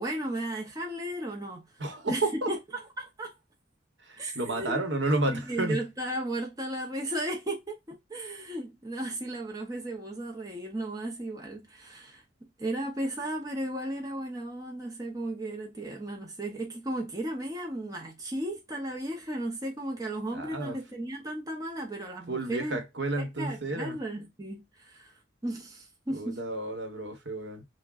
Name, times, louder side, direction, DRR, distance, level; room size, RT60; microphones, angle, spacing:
voice 1, 0.0-1.6 2.1-2.2 2.5-2.6 3.0-3.3 4.2-4.8 5.3-22.8 23.2-25.1 25.4-26.4, right 1 dB, 20° right, 0.7 m, -35 dB
voice 2, 1.8-2.5 4.0-5.8 20.3-20.8 22.3-24.0 26.1-27.6, right 2 dB, 60° right, 1.0 m, -31 dB
6.0 x 2.2 x 2.3 m
head